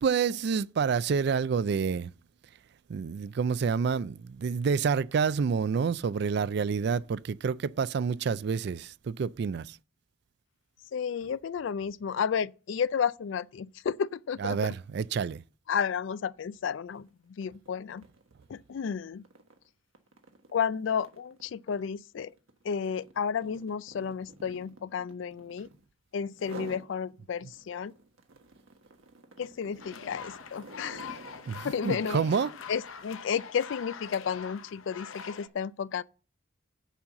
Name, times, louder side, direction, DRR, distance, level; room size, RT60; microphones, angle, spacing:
voice 1, 0.0-2.1 2.9-9.8 14.4-15.4 31.5-32.5, right 6 dB, 55° right, 0.3 m, -28 dB
voice 2, 10.9-14.7 15.7-17.1 17.4-18.0 18.5-19.2 20.5-22.3 22.6-25.7 26.1-27.9 29.4-31.1 31.6-32.2 32.7-36.0, left 7 dB, 65° left, 0.3 m, -32 dB
sound 1, 16.9-17.1 17.4-25.9 26.3-26.9 27.3-32.5, right 2 dB, 90° right, 1.3 m, -50 dB
sound 2, 29.8-35.5, left 6 dB, 85° left, 0.7 m, -43 dB
7.2 x 5.5 x 7.4 m
head